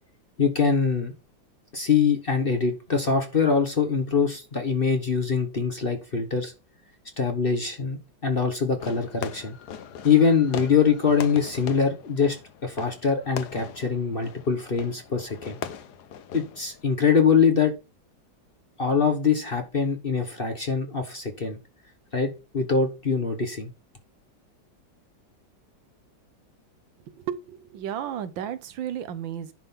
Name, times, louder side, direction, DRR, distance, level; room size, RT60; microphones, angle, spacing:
voice 1, 0.4-1.1 1.7-6.5 7.2-9.6 10.0-12.4 12.6-15.6 16.3-17.7 18.8-21.6 22.1-23.7, left 5 dB, 35° left, 1.0 m, -23 dB
Fireworks, 8.8-16.9, left 8 dB, 65° left, 1.3 m, -40 dB
voice 2, 27.1-29.5, right 9 dB, 80° right, 1.6 m, -33 dB
10.5 x 3.7 x 5.6 m
omnidirectional pair, 2.1 m